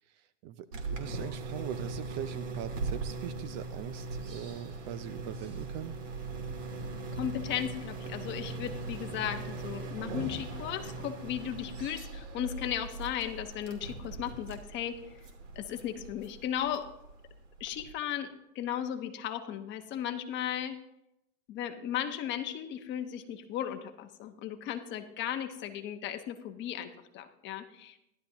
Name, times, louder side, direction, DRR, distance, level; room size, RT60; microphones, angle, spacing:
voice 1, 0.2-5.9, right 11 dB, 40° right, 13 dB, 0.5 m, -41 dB
sound 1, 0.7-17.9, right 3 dB, 85° right, 2.8 m, -40 dB
voice 2, 7.2-15.0 15.5-16.9 17.6-18.3 18.5-20.8 21.5-28.0, left 10 dB, 30° left, 7 dB, 1.1 m, -36 dB
14.5 x 12.0 x 2.9 m, 0.84 s
supercardioid pair, 135°, 37 cm